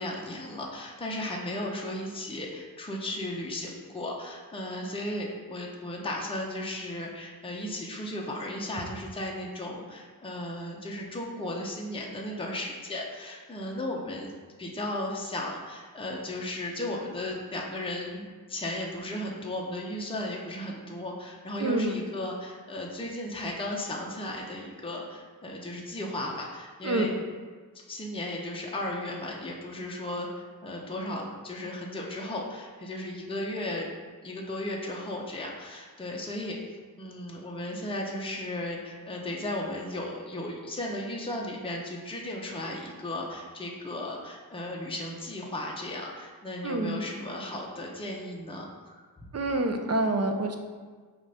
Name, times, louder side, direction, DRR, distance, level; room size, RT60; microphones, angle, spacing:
voice 1, 0.0-14.3 14.6-27.2 27.9-33.9 34.2-49.1, left 1 dB, 15° left, -2 dB, 0.8 m, -35 dB
voice 2, 21.6-21.9 26.8-27.1 46.6-47.0 49.3-50.6, right 2 dB, 45° right, 5 dB, 0.7 m, -27 dB
6.9 x 2.6 x 5.6 m, 1.5 s
cardioid pair, 75°, 37 cm